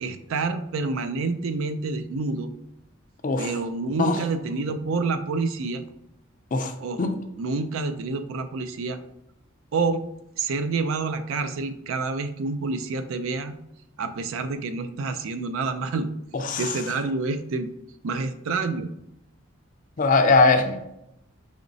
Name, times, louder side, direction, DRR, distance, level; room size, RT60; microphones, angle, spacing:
voice 1, 0.0-2.5 3.4-5.8 6.8-9.0 9.7-10.0 10.4-13.6 14.0-16.1 16.6-17.7 18.0-18.9, right 4 dB, 75° right, 0.4 m, -28 dB
voice 2, 20.0-21.0, left 3 dB, 40° left, 0.4 m, -20 dB
5.0 x 3.0 x 2.6 m
head